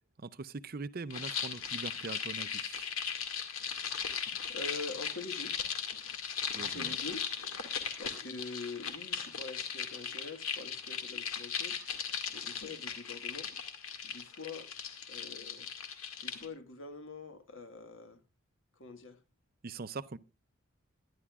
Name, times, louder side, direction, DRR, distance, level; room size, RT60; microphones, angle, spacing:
voice 1, 0.2-2.9 6.5-6.9 19.6-20.2, right 4 dB, 45° right, 0.5 m, -42 dB
sound 1, 1.1-16.5, left 7 dB, 85° left, 2.1 m, -38 dB
voice 2, 4.5-5.6 6.5-7.6 8.0-11.8 12.3-13.5 14.0-14.7 15.1-15.7 16.2-18.2 18.7-19.2, left 3 dB, 65° left, 1.6 m, -45 dB
21.0 x 11.0 x 2.4 m
head